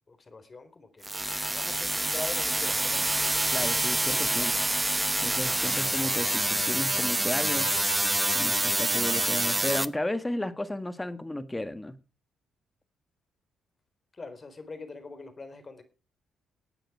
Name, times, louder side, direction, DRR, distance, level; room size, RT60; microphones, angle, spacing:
voice 1, 0.1-3.0 14.1-15.8, left 3 dB, 35° left, 4.0 m, -43 dB
sound 1, 1.0-9.9, right 2 dB, 15° right, 0.9 m, -27 dB
voice 2, 3.5-4.6 5.2-7.7 8.3-12.0, left 1 dB, 15° left, 1.8 m, -33 dB
17.0 x 9.0 x 4.9 m
supercardioid pair, 60°, 0 cm